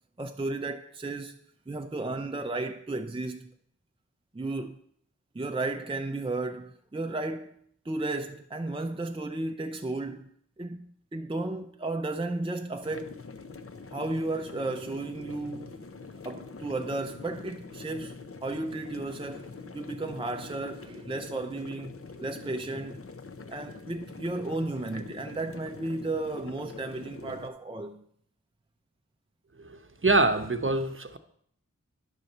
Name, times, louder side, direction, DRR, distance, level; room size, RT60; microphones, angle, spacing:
voice 1, 0.2-1.4 1.7-3.5 4.3-4.8 5.3-7.6 7.8-10.3 10.6-13.2 13.9-15.8 16.2-23.0 23.5-28.0, right 2 dB, 15° right, 0.5 m, -34 dB
sound 1, 12.8-27.5, left 4 dB, 45° left, 0.7 m, -44 dB
voice 2, 30.0-31.2, right 2 dB, 40° right, 0.8 m, -24 dB
10.5 x 4.3 x 6.5 m
wide cardioid pair, 50°, 31 cm